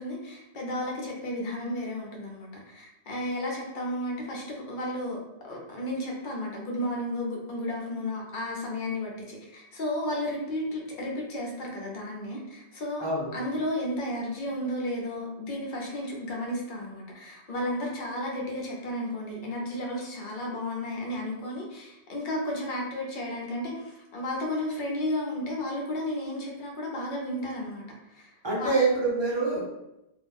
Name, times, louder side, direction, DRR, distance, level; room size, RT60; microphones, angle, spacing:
voice 1, 0.0-5.2 5.4-13.0 13.3-28.7, left 1 dB, 55° left, -2 dB, 0.8 m, -33 dB
voice 2, 28.4-29.6, right 3 dB, 30° right, -5 dB, 0.7 m, -25 dB
2.4 x 2.1 x 3.2 m, 0.90 s
omnidirectional pair, 1.1 m